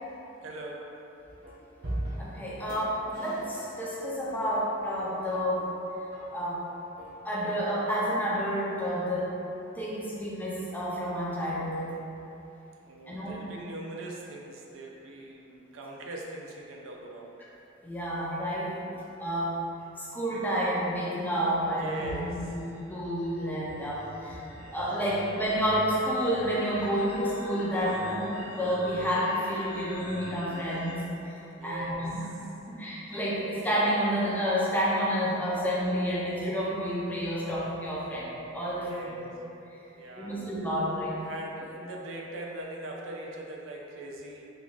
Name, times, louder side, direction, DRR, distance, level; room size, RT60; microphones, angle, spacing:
voice 1, 0.4-0.9 12.9-17.4 21.8-22.5 24.5-25.0 31.6-32.5 38.8-39.4 40.0-40.4 41.2-44.4, right 1 dB, 75° right, -1 dB, 0.4 m, -41 dB
sound 1, 1.4-1.5 1.8-2.4 2.7-2.8 3.1-3.9 4.4-4.5 5.3-5.4 6.1-6.2 7.0-7.1, right 1 dB, 55° right, 0.8 m, -37 dB
voice 2, 2.2-5.7 6.3-6.6 7.2-9.4 9.8-11.9 13.1-13.4 17.8-18.8 19.2-19.6 20.0-24.4 24.7-31.1 31.6-32.2 32.7-39.2 40.2-41.2, equal, 10° left, -6 dB, 0.5 m, -30 dB
sound 2, 21.6-30.9, left 1 dB, 40° left, 0.9 m, -44 dB
2.9 x 2.4 x 3.8 m, 2.9 s
head